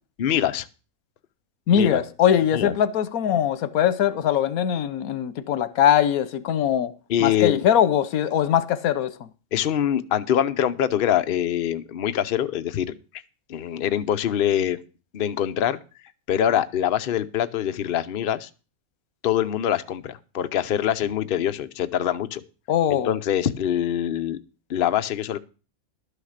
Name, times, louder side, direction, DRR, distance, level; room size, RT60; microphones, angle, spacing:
voice 1, 0.2-0.7 1.7-2.0 2.5-2.7 7.1-7.6 9.5-12.9 13.5-14.8 15.1-15.8 16.3-18.5 19.2-22.4 22.9-24.4 24.7-25.4, left 10 dB, 50° left, 0.8 m, -24 dB
voice 2, 1.7-6.9 7.2-9.3 22.7-23.1, left 9 dB, 85° left, 1.2 m, -21 dB
12.0 x 6.6 x 6.4 m
omnidirectional pair, 1.5 m